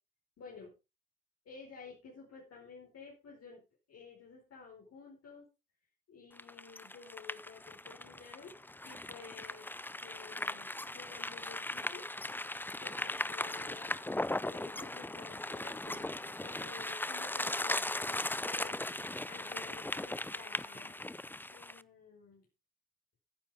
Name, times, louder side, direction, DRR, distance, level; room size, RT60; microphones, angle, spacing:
voice 1, 0.4-0.7 1.4-3.6 3.9-5.4 6.1-8.5 8.8-9.7 10.0-10.7 10.9-12.0 12.7-14.0 14.5-18.9 19.3-21.0 21.5-22.4, left 5 dB, 60° left, -2 dB, 5.0 m, -52 dB
sound 1, 6.4-21.8, left 1 dB, 5° left, 0.6 m, -38 dB
14.5 x 9.9 x 3.6 m, 0.28 s
hypercardioid pair, 45°, 29 cm